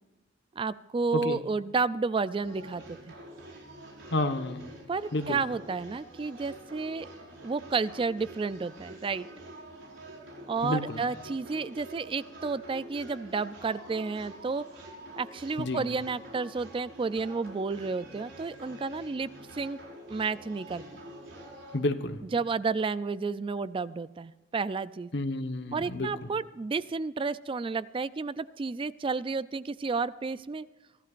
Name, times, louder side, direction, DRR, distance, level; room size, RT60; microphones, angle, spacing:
voice 1, 0.6-3.0 4.9-7.1 7.4-9.3 10.5-14.6 15.2-19.8 20.1-20.8 22.3-25.1 25.7-30.7, right 4 dB, 25° right, 16 dB, 0.3 m, -31 dB
sound 1, 2.4-21.8, right 1 dB, 75° right, 5.4 m, -47 dB
voice 2, 4.1-4.6 5.1-5.4 10.6-11.0 15.6-15.8 21.7-22.2 25.1-26.1, left 2 dB, 65° left, 8 dB, 1.2 m, -30 dB
24.0 x 15.0 x 2.5 m, 1.1 s
head